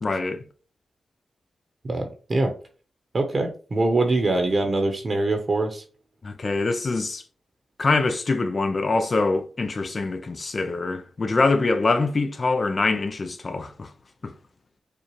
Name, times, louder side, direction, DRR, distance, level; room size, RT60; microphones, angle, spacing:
voice 1, 0.0-0.4 6.2-7.2 7.8-13.9 14.2-14.3, left 3 dB, 45° left, 0.6 m, -24 dB
voice 2, 1.8-2.5 3.1-5.8, right 2 dB, 45° right, 0.9 m, -23 dB
6.8 x 2.4 x 3.1 m
cardioid pair, 50°, 0 cm